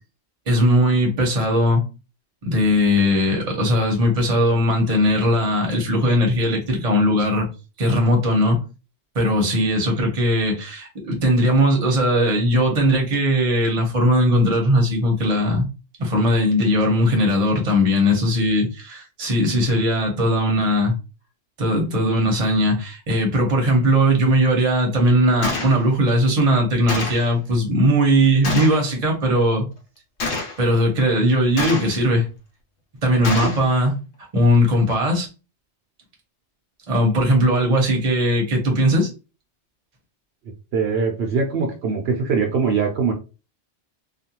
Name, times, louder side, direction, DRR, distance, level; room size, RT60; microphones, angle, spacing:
voice 1, 0.5-1.9 2.4-7.5 7.8-8.6 9.1-15.7 16.0-20.9 21.6-29.6 30.6-32.3 33.0-33.9 34.3-35.3 36.9-39.1, equal, 35° right, 1 dB, 0.9 m, -19 dB
Gunshot gunfire, 25.4-25.8 26.9-27.3 28.4-28.8 30.2-30.6 31.6-32.0 33.2-33.6, left 3 dB, 80° left, 1.0 m, -26 dB
voice 2, 40.7-43.1, right 5 dB, 70° right, 2 dB, 0.8 m, -22 dB
2.4 x 2.3 x 2.8 m, 0.31 s
omnidirectional pair, 1.2 m